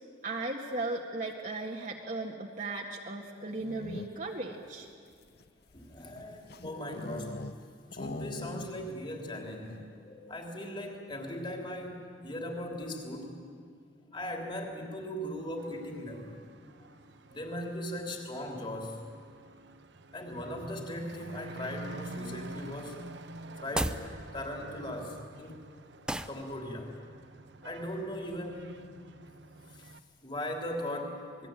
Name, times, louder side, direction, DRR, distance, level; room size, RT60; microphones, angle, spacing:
voice 1, 0.2-4.9, right 2 dB, 45° right, -1 dB, 1.7 m, -36 dB
sound 1, 3.4-4.4 5.1-7.6 7.9-9.0 9.3-9.4 9.6-10.0, left 2 dB, 55° left, 0.7 m, -42 dB
voice 2, 5.7-7.5 7.9-13.4 14.1-16.4 16.7-17.0 17.3-19.0 20.1-23.1 23.6-25.7 26.3-26.9 27.6-28.9 29.7-31.5, left 1 dB, 25° left, 1 dB, 3.5 m, -39 dB
Truck / Accelerating revving vroom, 15.6-30.0, right 2 dB, 70° right, 1.0 m, -48 dB
sound 2, 23.6-24.1 26.1-26.4, right 1 dB, 5° right, 0.6 m, -32 dB
28.0 x 21.0 x 9.1 m, 2.1 s
head